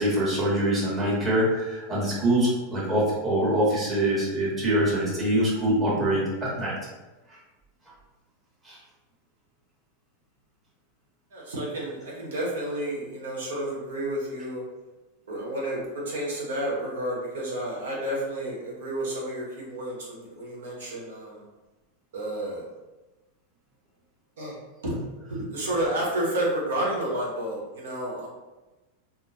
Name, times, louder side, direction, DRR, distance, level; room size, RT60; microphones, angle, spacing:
voice 1, 0.0-6.7 8.6-8.8, right 1 dB, 20° right, -7 dB, 1.5 m, -24 dB
voice 2, 11.3-14.6 15.3-21.4 22.1-22.7 24.4-24.5 24.8-28.3, right 1 dB, 85° right, -3 dB, 1.1 m, -31 dB
3.5 x 2.1 x 2.8 m, 1.1 s
hypercardioid pair, 110°, 0 cm